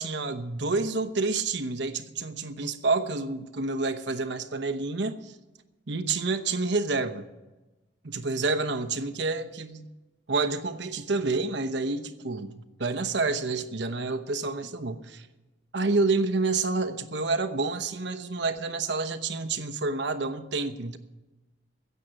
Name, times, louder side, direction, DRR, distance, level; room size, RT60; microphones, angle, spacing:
voice 1, 0.0-5.3 5.9-7.3 8.0-9.9 10.3-15.3 15.7-21.0, right 3 dB, 65° right, 10 dB, 1.0 m, -28 dB
16.0 x 7.4 x 8.9 m, 1.1 s
head